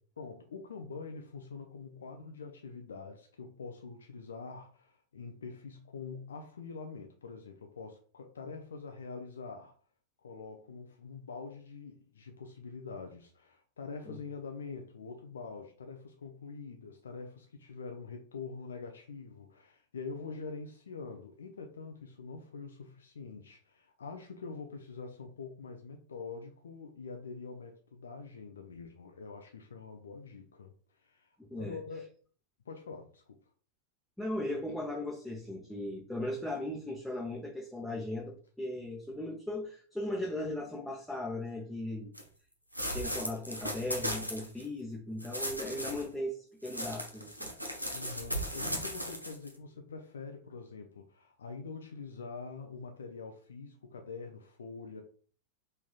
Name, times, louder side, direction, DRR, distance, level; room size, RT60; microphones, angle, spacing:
voice 1, 0.2-9.8 10.2-32.1 32.7-33.4 45.9-46.1 47.9-55.0, left 4 dB, 70° left, 0.4 m, -45 dB
voice 2, 31.4-31.8 34.2-42.1 42.9-47.5, left 1 dB, ahead, 0.7 m, -37 dB
sound 1, 42.1-42.2 42.7-44.6 45.2-46.0 46.6-49.5, equal, 90° right, 0.6 m, -37 dB
3.5 x 3.2 x 2.3 m
figure-of-eight pair, 90°, 0 cm